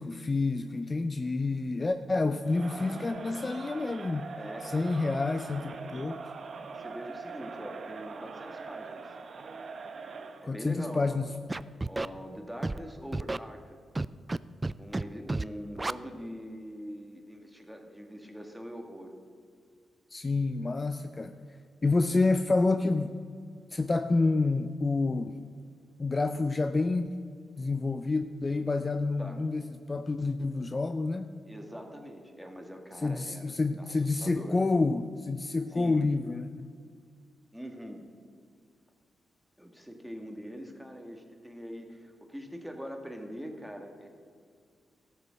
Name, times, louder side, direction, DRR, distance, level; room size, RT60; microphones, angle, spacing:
voice 1, 0.0-4.3 4.7-6.2 10.4-11.3 20.1-21.4 21.8-23.2 23.7-25.3 26.0-27.1 27.6-31.3 33.0-36.7, left 3 dB, 35° left, 9 dB, 0.5 m, -28 dB
Crowd, 2.4-10.5, right 4 dB, 60° right, 0.9 m, -42 dB
voice 2, 4.3-4.9 6.7-9.1 10.4-11.2 11.9-13.8 14.8-19.1 29.2-29.4 31.5-33.5 33.8-34.6 35.7-36.0 37.5-38.0 39.6-44.1, equal, 5° right, 3 dB, 1.8 m, -43 dB
Scratching (performance technique), 11.5-12.1 12.6-12.8 13.1-13.4 14.0-14.4 14.6-15.0 15.3-15.4 15.8-15.9, right 2 dB, 25° right, 0.3 m, -30 dB
13.5 x 6.9 x 6.4 m, 2.1 s
supercardioid pair, 55°, 0 cm